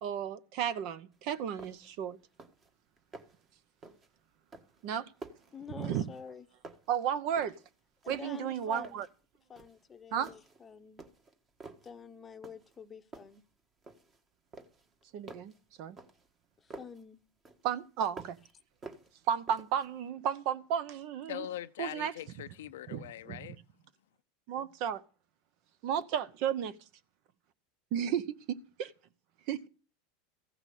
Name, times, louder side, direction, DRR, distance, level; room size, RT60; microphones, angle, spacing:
voice 1, 0.0-2.2 4.8-5.1 5.8-6.0 6.9-7.6 8.1-9.1 10.1-10.3 15.1-15.5 15.8-16.0 17.6-18.4 19.3-21.5 21.8-22.1 22.9-23.6 24.5-25.0 25.8-26.8 27.9-28.9 29.5-29.7, right 9 dB, 55° right, 0.8 m, -33 dB
sound 1, 1.1-1.2 1.6-2.0 2.3-2.7 3.0-3.5 3.8-4.1 4.5-6.4 6.6-7.7 8.0-9.2 9.6-9.8 10.2-10.6 11.0-11.9 12.4-12.8 13.1-14.2 14.5-17.0 17.4-18.5 18.8-19.9, right 3 dB, 25° right, 1.6 m, -51 dB
voice 2, 5.5-6.4 8.0-9.0 9.5-11.0 11.8-13.4 16.6-17.2, left 6 dB, 20° left, 0.8 m, -48 dB
voice 3, 21.3-23.6, left 12 dB, 85° left, 0.6 m, -42 dB
15.0 x 5.9 x 8.3 m
supercardioid pair, 130°, 0 cm